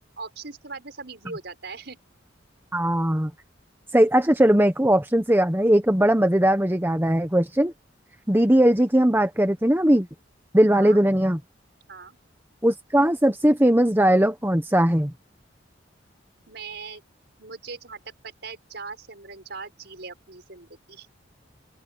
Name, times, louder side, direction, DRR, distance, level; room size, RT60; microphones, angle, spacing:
voice 1, 0.2-2.0 10.7-11.1 11.9-12.2 16.5-17.0 17.4-21.1, right 4 dB, 60° right, 6.4 m, -40 dB
voice 2, 2.7-3.3 3.9-7.7 8.3-10.1 10.5-11.4 12.6-15.1, right 1 dB, 10° right, 1.2 m, -19 dB
open air
head